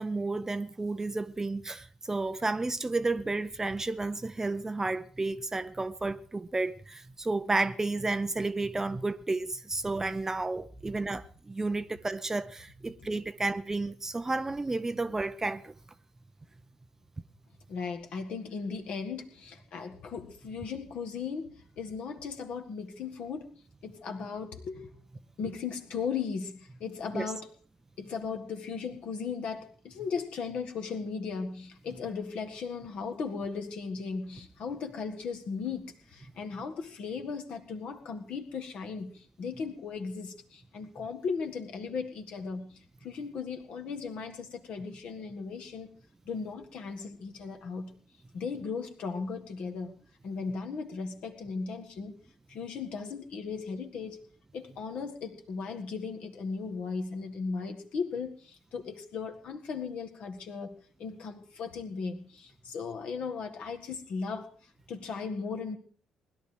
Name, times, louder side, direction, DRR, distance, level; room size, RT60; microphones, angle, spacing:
voice 1, 0.0-15.7 27.1-27.3, right 3 dB, 20° right, 0.7 m, -32 dB
voice 2, 17.7-21.5 21.8-23.5 23.8-24.9 25.4-27.5 28.0-45.9 46.3-47.9 48.3-49.9 50.2-52.2 52.5-54.2 54.5-64.5 64.9-65.8, left 5 dB, 55° left, 1.8 m, -37 dB
20.0 x 12.0 x 4.8 m
figure-of-eight pair, 45°, 2 cm